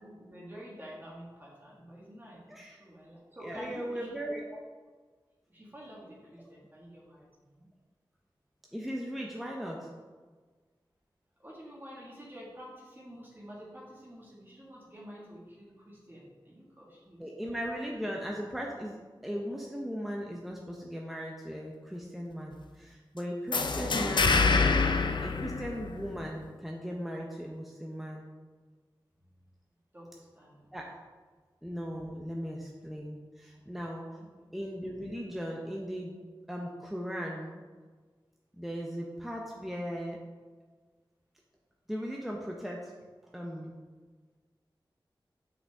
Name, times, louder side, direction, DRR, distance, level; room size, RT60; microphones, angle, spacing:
voice 1, 0.0-4.1 5.5-7.7 11.4-17.2 29.9-30.6 33.5-33.6 34.1-34.5, equal, 25° right, -6 dB, 1.7 m, -49 dB
voice 2, 2.5-2.8 3.4-4.4 8.7-9.8 17.2-19.0 19.2-24.4 25.2-28.2 30.7-30.9 31.6-34.1 34.5-36.2 36.5-37.6 38.5-40.2 41.9-42.9 43.3-43.7, equal, ahead, -2 dB, 0.8 m, -38 dB
sound 1, 23.5-26.2, left 4 dB, 65° left, 0.4 m, -26 dB
5.8 x 5.7 x 3.5 m, 1.4 s
wide cardioid pair, 55°, 9 cm